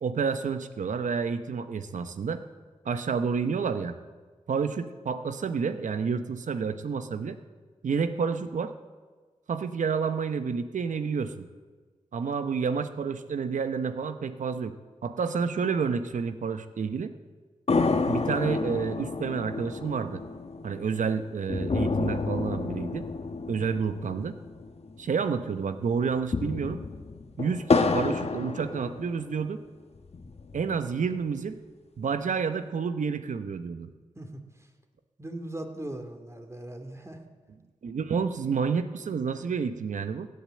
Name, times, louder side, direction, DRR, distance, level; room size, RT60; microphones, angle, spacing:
voice 1, 0.0-2.4 2.8-3.9 4.5-7.4 7.8-8.7 9.5-11.5 12.1-14.7 15.0-17.1 18.1-20.2 20.6-23.1 23.5-24.3 25.0-26.8 27.4-29.6 30.5-31.6 32.0-33.9 37.8-40.3, right 5 dB, 75° right, 10 dB, 0.9 m, -29 dB
sound 1, 17.7-25.3 25.5-25.6 26.1-29.4 30.0-30.9, left 4 dB, 55° left, 1.2 m, -30 dB
voice 2, 34.2-34.7 35.2-37.2, right 1 dB, 20° right, 4 dB, 2.4 m, -39 dB
16.0 x 9.5 x 7.6 m, 1.4 s
cardioid pair, 40°, 13 cm